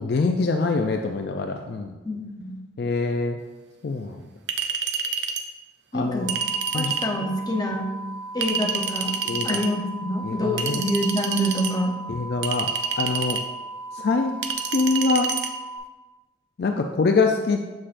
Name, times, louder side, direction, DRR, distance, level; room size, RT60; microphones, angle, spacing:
voice 1, 0.0-2.0 2.8-3.4 3.8-4.2 5.9-6.3 6.7-7.0 9.3-9.6 10.2-10.8 12.1-12.7 13.0-13.4 13.9-14.3 14.7-15.3 16.6-17.6, left 3 dB, 55° left, 4 dB, 0.4 m, -24 dB
voice 2, 2.0-2.6 5.9-6.3 6.7-7.9 8.3-9.1 9.4-12.0, equal, 20° left, 1 dB, 0.7 m, -26 dB
Chink clink, 4.5-5.5 6.3-7.1 8.4-9.7 10.6-11.7 12.4-13.5 14.4-15.5, right 6 dB, 70° right, 0.5 m, -28 dB
sound 1, 6.2-15.8, right 2 dB, 25° right, 1.6 m, -37 dB
7.2 x 6.5 x 2.5 m, 1.2 s
head